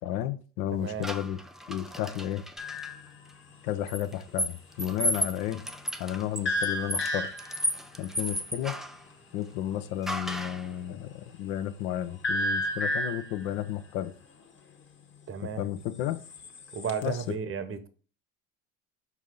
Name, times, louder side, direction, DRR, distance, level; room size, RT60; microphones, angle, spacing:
voice 1, 0.0-1.4 1.7-2.4 3.6-5.6 6.0-7.3 8.0-8.7 9.3-14.1 15.4-16.2 17.0-17.3, left 12 dB, 65° left, 0.9 m, -32 dB
sound 1, 1.0-2.9 3.9-9.0 10.1-10.7, equal, ahead, 0.3 m, -34 dB
sound 2, 2.6-3.1 6.4-7.7 12.2-13.4 16.1-17.0, left 1 dB, 25° left, 1.3 m, -31 dB
voice 2, 15.3-15.6 16.7-17.9, right 6 dB, 30° right, 0.9 m, -33 dB
5.6 x 4.8 x 3.7 m
hypercardioid pair, 65°, 44 cm